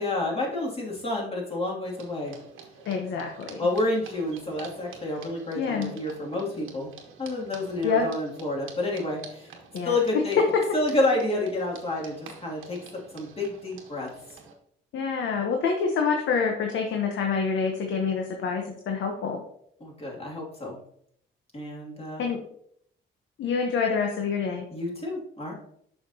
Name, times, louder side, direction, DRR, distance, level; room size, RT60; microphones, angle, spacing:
voice 1, 0.0-2.4 3.6-6.9 7.2-9.5 9.8-10.4 10.7-14.1 19.8-20.8 21.5-22.3 24.7-25.5, left 2 dB, 30° left, -3 dB, 2.6 m, -29 dB
sound 1, 1.8-14.5, right 5 dB, 90° right, 1.3 m, -48 dB
voice 2, 2.9-3.6 5.6-5.9 7.8-8.1 9.7-10.2 14.9-19.4 22.2-22.4 23.4-24.7, left 5 dB, 70° left, 3 dB, 1.0 m, -27 dB
6.7 x 5.8 x 2.8 m, 0.68 s
cardioid pair, 90°, 20 cm